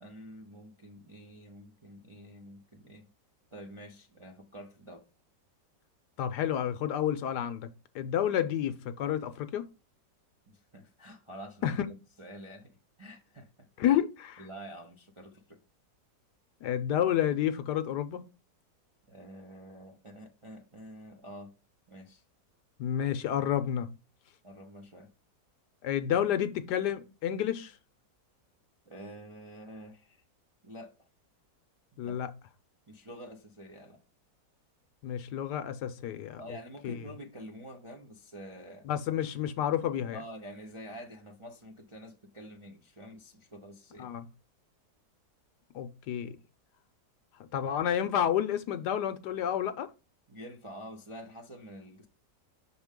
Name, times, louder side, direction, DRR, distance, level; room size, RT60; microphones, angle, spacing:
voice 1, 0.0-3.1 3.5-5.0 10.5-14.0 14.4-15.6 19.1-21.5 21.9-22.2 24.4-25.1 28.9-30.2 30.6-30.9 31.9-32.2 32.9-34.0 36.4-38.9 40.1-44.1 50.3-52.1, equal, 35° right, 0.5 m, -47 dB
voice 2, 6.2-7.7 7.9-9.7 11.6-11.7 13.8-14.1 16.6-18.2 22.8-23.9 25.8-27.7 32.0-32.3 35.0-36.4 36.8-36.9 38.8-40.2 44.0-44.3 45.7-46.4 47.5-49.9, left 10 dB, 75° left, 1.2 m, -30 dB
6.5 x 4.4 x 3.6 m
omnidirectional pair, 1.9 m